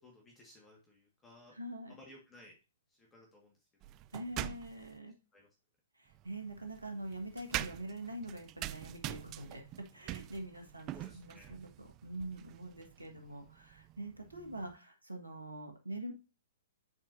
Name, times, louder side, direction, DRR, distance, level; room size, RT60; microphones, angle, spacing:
voice 1, 0.0-1.5 1.9-2.5 2.9-3.6 3.8-4.0 5.3-5.5 10.9-11.6, left 1 dB, 15° left, -1 dB, 1.7 m, -58 dB
voice 2, 1.5-2.0 4.1-5.1 5.9-16.1, right 1 dB, 90° right, 4 dB, 1.7 m, -44 dB
sound 1, 3.8-5.0 6.1-14.8, right 16 dB, 30° right, 0.3 m, -45 dB
10.5 x 4.4 x 2.7 m, 0.31 s
figure-of-eight pair, 115°, 0 cm